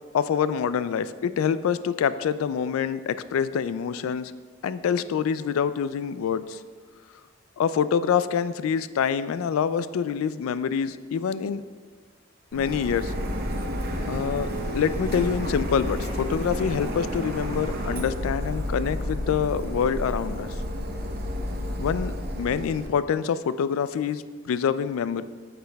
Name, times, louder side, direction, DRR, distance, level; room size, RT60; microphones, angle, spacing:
voice 1, 0.1-4.3 4.6-6.6 7.6-11.6 12.5-13.1 14.1-20.5 21.8-25.2, left 7 dB, 85° left, 15 dB, 0.3 m, -26 dB
Printer, 12.5-22.9, equal, 45° right, 0.7 m, -30 dB
9.2 x 6.7 x 2.2 m, 1.5 s
head